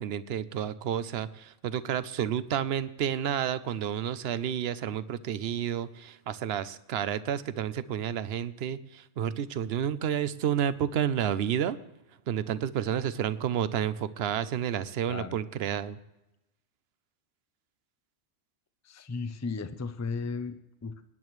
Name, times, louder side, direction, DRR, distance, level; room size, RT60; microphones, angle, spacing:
voice 1, 0.0-11.8 12.3-16.0, right 9 dB, 65° right, 15 dB, 0.8 m, -30 dB
voice 2, 15.1-15.4 18.8-21.1, left 4 dB, 20° left, 10 dB, 0.5 m, -35 dB
24.5 x 10.5 x 3.1 m, 0.95 s
omnidirectional pair, 1.2 m